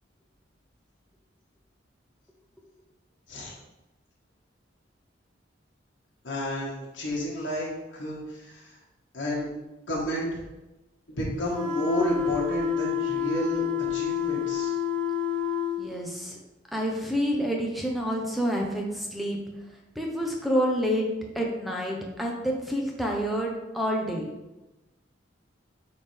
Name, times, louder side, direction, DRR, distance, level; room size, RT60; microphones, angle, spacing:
voice 1, 6.2-8.8 9.1-9.5 9.9-10.4 11.1-14.8, equal, 90° left, -5 dB, 1.6 m, -31 dB
sound 1, 11.5-15.7, left 9 dB, 70° right, 1.5 m, -28 dB
voice 2, 15.8-16.4 16.7-19.4 20.0-21.1 21.3-24.3, equal, ahead, -1 dB, 0.8 m, -28 dB
8.5 x 3.7 x 3.4 m, 1.0 s
head